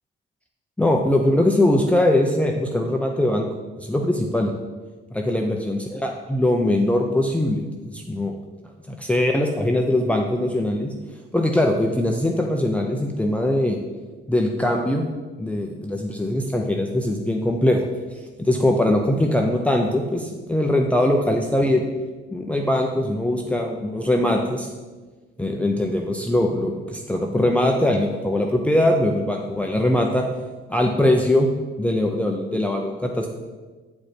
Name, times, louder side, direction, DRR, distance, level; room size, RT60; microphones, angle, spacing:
voice 1, 0.8-3.5 3.8-4.5 5.1-8.3 8.9-10.9 11.3-13.8 14.3-15.1 15.4-17.8 18.4-21.9 22.3-24.7 25.4-30.3 30.7-31.5 31.8-33.3, left 1 dB, 5° left, 1 dB, 0.7 m, -21 dB
8.2 x 5.0 x 4.4 m, 1.3 s
cardioid pair, 90°, 20 cm